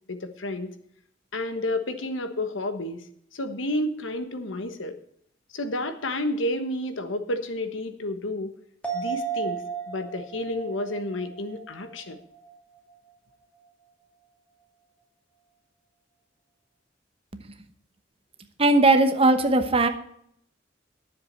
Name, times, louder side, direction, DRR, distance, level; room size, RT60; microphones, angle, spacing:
voice 1, 0.1-0.7 1.3-3.0 3.3-4.9 5.5-8.5 8.9-9.6 9.9-12.2, left 1 dB, 85° left, 9 dB, 1.3 m, -30 dB
sound 1, 8.8-12.5 12.9-13.0, right 6 dB, 5° left, 2.4 m, -34 dB
voice 2, 18.6-19.9, right 2 dB, 30° right, 8 dB, 1.1 m, -18 dB
10.0 x 7.5 x 7.4 m, 0.67 s
head